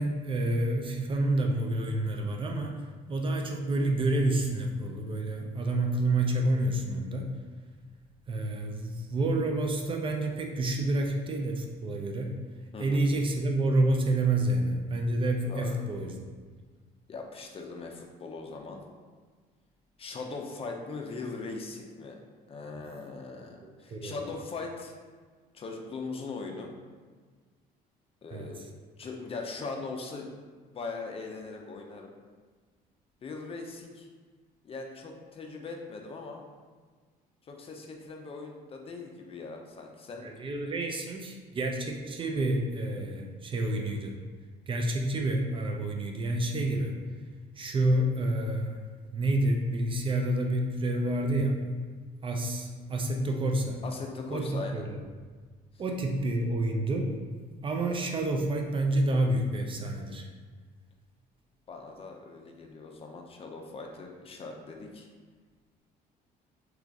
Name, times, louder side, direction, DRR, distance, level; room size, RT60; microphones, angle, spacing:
voice 1, 0.0-7.3 8.3-12.4 12.8-16.1 23.6-24.2 28.3-28.5 40.2-44.1 44.7-46.9 47.6-48.8 49.1-51.6 52.2-53.8 54.3-54.9 55.8-57.1 57.6-60.3, right 1 dB, 30° right, 2 dB, 0.4 m, -29 dB
voice 2, 17.1-18.8 20.0-22.2 22.5-25.0 25.5-26.7 28.2-28.6 29.0-30.3 30.7-32.1 33.2-34.1 34.6-36.4 37.4-40.3 53.8-54.8 61.7-65.1, left 3 dB, 35° left, 2 dB, 0.5 m, -40 dB
3.0 x 2.4 x 3.5 m, 1.5 s
cardioid pair, 110°, 17 cm